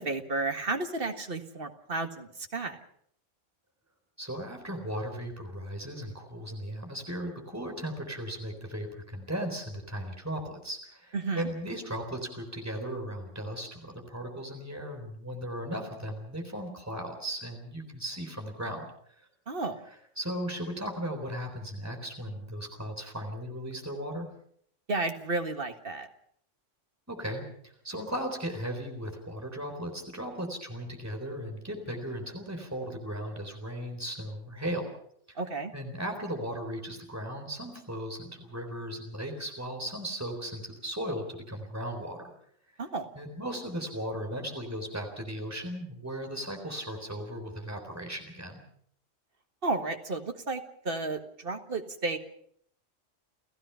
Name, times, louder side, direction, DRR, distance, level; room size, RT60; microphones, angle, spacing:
voice 1, 0.0-2.8 11.1-11.5 19.5-19.8 24.9-26.1 35.4-35.7 42.8-43.1 49.6-52.2, right 3 dB, 50° right, 6 dB, 1.9 m, -32 dB
voice 2, 4.2-18.8 19.2-19.3 19.9-24.3 27.1-34.9 35.3-35.4 35.7-42.2 43.2-48.6, equal, 10° right, 4 dB, 3.8 m, -37 dB
30.0 x 15.5 x 5.7 m, 0.65 s
omnidirectional pair, 1.3 m